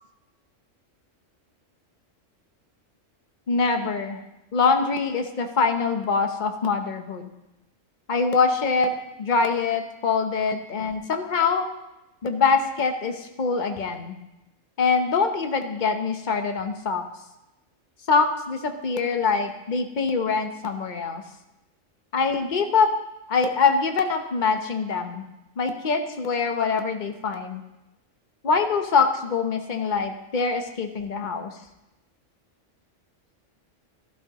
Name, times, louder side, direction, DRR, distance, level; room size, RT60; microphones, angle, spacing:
voice 1, 3.5-4.2 4.5-7.3 8.1-8.9 9.2-11.7 12.2-14.2 14.8-17.0 18.1-21.2 22.1-22.9 23.3-25.2 25.6-27.6 28.4-31.6, left 4 dB, 40° left, 6 dB, 1.0 m, -24 dB
12.5 x 11.5 x 3.0 m, 0.95 s
omnidirectional pair, 1.3 m